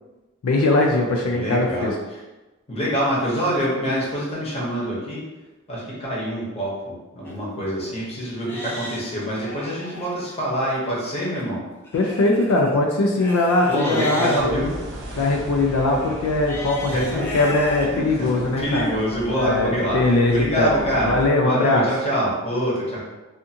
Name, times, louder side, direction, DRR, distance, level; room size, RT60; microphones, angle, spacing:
voice 1, 0.4-1.9 11.9-14.8 15.1-19.0 19.4-21.9, left 2 dB, 80° left, 1 dB, 0.4 m, -21 dB
voice 2, 1.3-1.9 2.7-5.2 5.7-11.6 13.7-14.7 16.9-17.2 17.9-20.0 20.3-21.1 21.4-23.0, equal, 30° left, -6 dB, 0.8 m, -25 dB
Livestock farm animals working animals, 7.3-7.4 7.9-8.0 8.4-10.1 11.8-14.4 15.6-17.9 18.4-18.5 19.1-19.2, left 1 dB, 10° left, 0.4 m, -35 dB
sound 1, 14.4-21.3, equal, 60° right, 0.5 m, -37 dB
2.5 x 2.4 x 2.7 m, 1.1 s
head